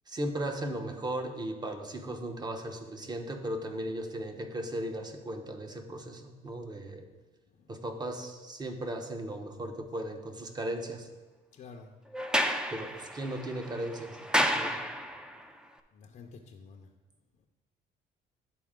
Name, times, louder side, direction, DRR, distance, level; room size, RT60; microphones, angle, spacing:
voice 1, 0.1-7.1 7.7-11.1 12.7-14.2 14.5-14.7, right 1 dB, 25° right, 5 dB, 0.9 m, -36 dB
voice 2, 11.5-11.9 15.1-15.3 15.9-16.9, left 4 dB, 50° left, 1 dB, 0.6 m, -50 dB
Sliding door, 12.1-15.4, equal, 5° right, 0.5 m, -31 dB
11.0 x 4.1 x 3.7 m, 1.3 s
cardioid pair, 110°, 17 cm